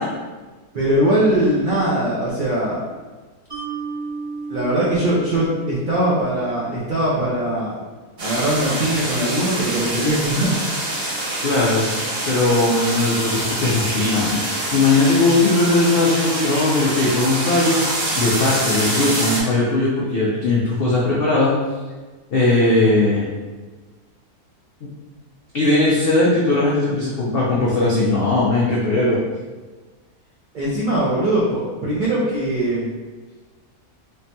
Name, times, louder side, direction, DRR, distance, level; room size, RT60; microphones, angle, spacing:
voice 1, 0.7-2.8 4.5-7.8 8.2-10.6 30.5-32.9, right 1 dB, 75° right, -7 dB, 0.4 m, -21 dB
Mallet percussion, 3.5-6.8, right 4 dB, 20° right, 0.8 m, -33 dB
sound 1, 8.2-19.4, right 1 dB, 55° right, 0.7 m, -25 dB
voice 2, 11.4-21.5 22.3-23.3 24.8-24.9 25.5-29.2, left 2 dB, 80° left, -6 dB, 0.5 m, -19 dB
3.3 x 2.2 x 2.6 m, 1.3 s
omnidirectional pair, 1.6 m